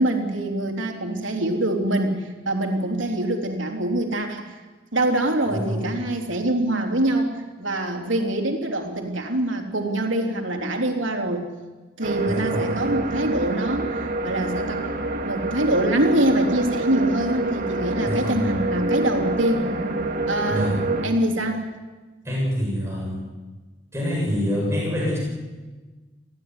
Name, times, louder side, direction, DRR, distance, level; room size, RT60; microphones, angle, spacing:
voice 1, 0.0-4.6 4.9-11.5 12.0-14.9 15.3-19.7 20.3-21.7, right 1 dB, 85° right, 3 dB, 3.5 m, -24 dB
voice 2, 5.5-5.8 12.3-12.7 18.0-18.4 20.5-20.8 22.2-23.2 23.9-25.2, equal, 15° right, -4 dB, 7.7 m, -26 dB
sound 1, 12.0-21.1, right 2 dB, 50° right, 2.2 m, -27 dB
26.5 x 16.0 x 9.8 m, 1.3 s
head